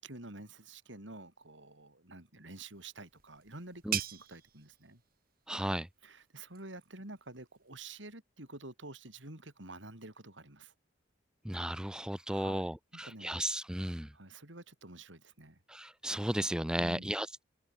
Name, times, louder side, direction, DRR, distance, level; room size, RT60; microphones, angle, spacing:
voice 1, 0.0-5.0 6.0-10.7 12.3-13.4 14.1-15.6 16.8-17.1, right 2 dB, 75° right, 5.7 m, -49 dB
sound 1, 2.6-8.0, right 11 dB, 50° right, 3.2 m, -44 dB
voice 2, 5.5-5.9 11.4-14.1 15.7-17.4, right 1 dB, 5° right, 0.5 m, -34 dB
head